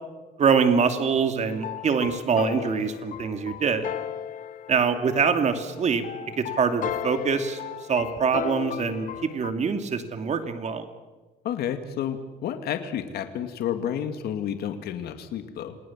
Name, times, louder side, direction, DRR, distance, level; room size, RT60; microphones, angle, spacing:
voice 1, 0.4-3.9 4.7-7.6 7.9-10.9, right 6 dB, 45° right, 7 dB, 2.7 m, -24 dB
sound 1, 1.5-9.5, left 10 dB, 50° left, 0.9 m, -35 dB
voice 2, 11.4-15.8, left 9 dB, 70° left, 8 dB, 2.2 m, -30 dB
28.5 x 19.5 x 7.5 m, 1.3 s
cardioid pair, 110°, 17 cm